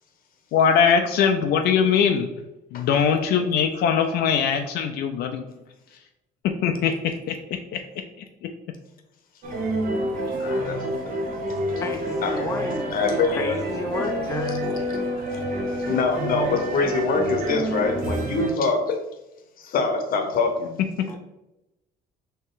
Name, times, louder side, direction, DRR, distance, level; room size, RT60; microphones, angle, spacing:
voice 1, 0.5-2.3 2.7-5.5 5.9-6.0 6.4-7.8 8.2-8.5, left 7 dB, 70° left, 5 dB, 0.5 m, -22 dB
sound 1, 9.4-18.5, right 1 dB, 60° right, 1.1 m, -28 dB
voice 2, 10.4-11.1 12.2-12.5 12.9-13.5 14.5-14.6 15.3-15.4 15.7-19.1 19.6-20.8, left 4 dB, 55° left, 5 dB, 0.9 m, -25 dB
voice 3, 11.7-12.8 13.3-14.6 21.1-21.2, left 3 dB, 15° left, 4 dB, 0.5 m, -32 dB
4.3 x 2.9 x 3.9 m, 0.94 s
cardioid pair, 110°, 17 cm